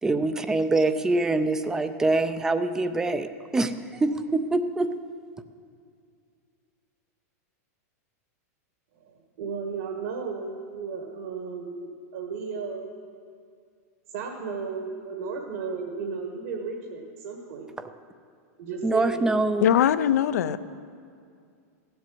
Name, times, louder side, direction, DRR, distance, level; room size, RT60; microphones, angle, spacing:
voice 1, 0.0-3.3 3.5-4.9 17.8-17.9 18.8-19.7, right 2 dB, 5° right, 11 dB, 0.4 m, -24 dB
voice 2, 9.0-12.9 14.1-17.7 18.6-19.4, right 5 dB, 55° right, 1 dB, 1.7 m, -34 dB
voice 3, 19.6-20.6, left 10 dB, 80° left, 13 dB, 0.6 m, -21 dB
15.5 x 7.9 x 8.5 m, 2.3 s
supercardioid pair, 165°, 9 cm